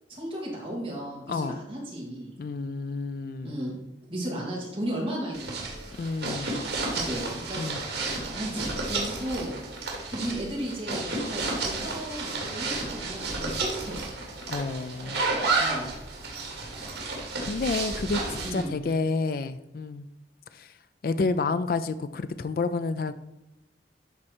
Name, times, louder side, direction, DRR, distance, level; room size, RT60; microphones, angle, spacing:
voice 1, 0.1-2.3 3.4-3.8 4.0-5.9 6.9-7.6 8.3-9.6 10.1-14.0 15.6-15.9 18.4-18.8, right 1 dB, 30° right, 3.1 m, -34 dB
voice 2, 2.4-3.6 5.9-6.6 7.5-7.8 14.5-15.3 17.4-20.1 20.5-20.7 21.0-23.1, left 4 dB, 50° left, 0.3 m, -30 dB
sound 1, 5.3-18.6, right 3 dB, 75° right, 2.4 m, -32 dB
12.5 x 4.3 x 4.4 m
head